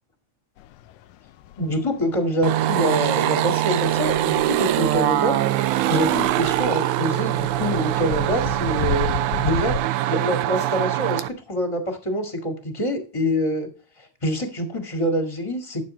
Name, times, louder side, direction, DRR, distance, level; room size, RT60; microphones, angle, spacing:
sound 1, 0.6-9.8, left 11 dB, 85° left, 2.1 m, -35 dB
voice 1, 1.6-5.4 5.9-9.1 9.4-9.7 10.1-13.7 14.2-15.8, equal, 15° left, 3 dB, 1.5 m, -25 dB
sound 2, 2.4-11.3, right 13 dB, 90° right, 2.1 m, -23 dB
13.5 x 6.7 x 3.3 m, 0.38 s
omnidirectional pair, 3.3 m